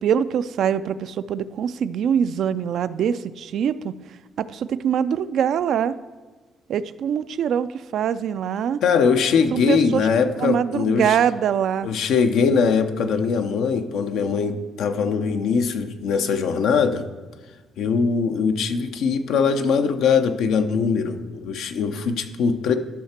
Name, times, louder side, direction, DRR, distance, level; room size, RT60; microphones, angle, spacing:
voice 1, 0.0-4.0 4.4-5.9 6.7-8.8 9.5-10.1 10.4-11.9, right 8 dB, 70° right, 14 dB, 0.3 m, -23 dB
voice 2, 8.8-11.2 11.8-17.1 17.8-22.7, left 5 dB, 80° left, 8 dB, 0.7 m, -21 dB
12.0 x 5.8 x 4.3 m, 1.3 s
cardioid pair, 90°, 0 cm